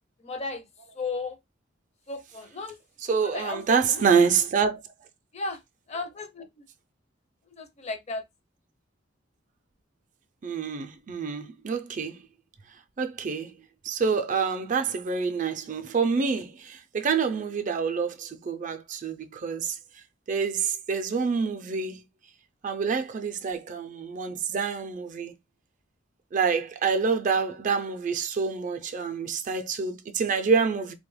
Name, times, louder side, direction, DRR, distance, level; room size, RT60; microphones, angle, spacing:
voice 1, 0.2-0.6 1.0-1.4 2.1-2.8 3.1-4.3 5.3-5.6 5.9-6.5 7.6-8.2, left 3 dB, 35° left, 0.5 m, -34 dB
voice 2, 3.1-4.8 10.4-12.2 13.0-13.6 13.8-19.8 20.3-22.0 22.6-25.3 26.3-30.9, right 5 dB, 40° right, 0.4 m, -27 dB
3.2 x 2.2 x 3.1 m
head